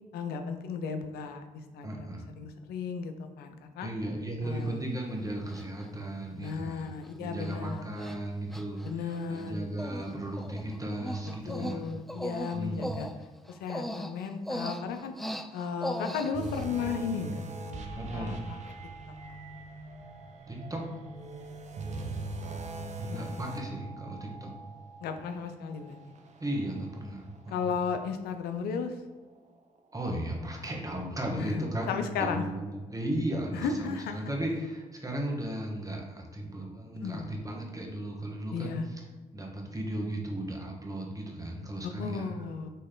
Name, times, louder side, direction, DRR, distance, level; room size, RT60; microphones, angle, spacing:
voice 1, 0.1-3.9 4.4-4.8 6.4-7.8 8.8-9.5 11.5-13.1 13.5-15.1 15.5-18.4 19.3-19.4 23.1-23.3 25.0-26.0 27.5-28.9 31.4-32.4 33.5-34.3 37.0-37.3 38.5-38.9 42.0-42.7, left 6 dB, 80° left, 7 dB, 0.5 m, -35 dB
voice 2, 1.8-2.3 3.8-6.9 7.2-11.9 12.5-13.2 17.9-18.4 20.5-20.9 23.0-24.5 26.4-27.7 29.9-38.8 39.3-42.3, right 1 dB, 20° right, -1 dB, 1.3 m, -35 dB
Human voice, 4.6-4.7 5.5-5.9 6.4-6.5 6.9-7.1 7.4-7.6 8.0-8.2 8.5-9.5 9.8-10.1 10.4-16.6, equal, ahead, 0.3 m, -38 dB
sound 1, 16.3-27.8 28.2-28.4 29.0-29.1, right 3 dB, 45° right, 0.6 m, -41 dB
4.2 x 3.1 x 3.8 m, 1.3 s
supercardioid pair, 50°, 16 cm